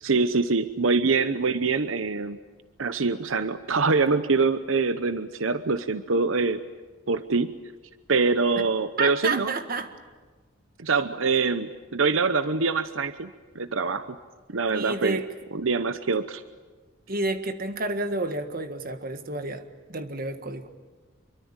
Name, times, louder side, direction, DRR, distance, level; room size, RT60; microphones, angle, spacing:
voice 1, 0.0-2.4 2.8-6.6 7.1-7.5 8.1-9.5 10.8-13.3 13.5-14.1 14.5-15.2 15.5-16.4, right 4 dB, 85° right, 12 dB, 0.9 m, -24 dB
voice 2, 9.0-9.9 14.7-15.2 17.1-20.6, right 2 dB, 45° right, 8 dB, 1.7 m, -30 dB
26.0 x 23.5 x 9.0 m, 1.4 s
head